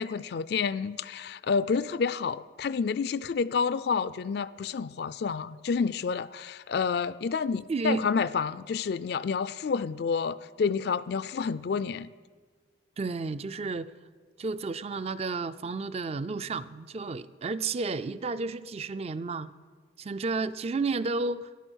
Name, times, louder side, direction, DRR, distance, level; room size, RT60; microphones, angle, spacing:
voice 1, 0.0-12.1, left 5 dB, 55° left, 16 dB, 0.3 m, -29 dB
voice 2, 7.7-8.0 13.0-13.9 14.4-19.5 20.0-21.5, right 3 dB, 30° right, 15 dB, 0.4 m, -32 dB
13.5 x 11.0 x 6.3 m, 1.5 s
head